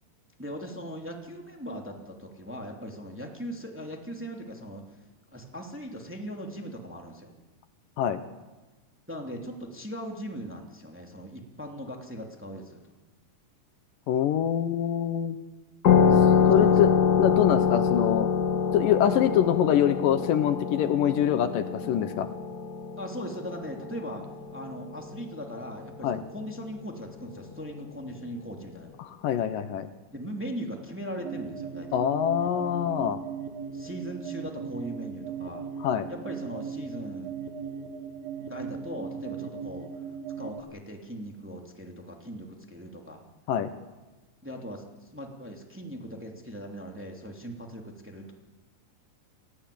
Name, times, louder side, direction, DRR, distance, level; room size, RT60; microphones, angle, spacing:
voice 1, 0.4-5.0 5.3-7.3 9.1-12.8 16.5-16.9 23.0-24.2 24.5-29.0 30.1-32.0 33.7-35.7 36.1-37.3 38.4-39.9 40.4-43.2 44.4-48.3, equal, 5° right, 1 dB, 2.3 m, -39 dB
voice 2, 14.1-15.4 16.5-16.9 17.2-18.3 18.7-22.3 26.0-26.2 29.0-29.9 31.9-33.2 35.8-36.1 43.5-43.7, left 10 dB, 75° left, 10 dB, 2.6 m, -25 dB
sound 1, 15.8-25.0, left 7 dB, 60° left, 1.0 m, -24 dB
sound 2, 31.2-40.6, right 6 dB, 80° right, 3.6 m, -38 dB
30.0 x 17.0 x 8.6 m, 1.2 s
omnidirectional pair, 4.1 m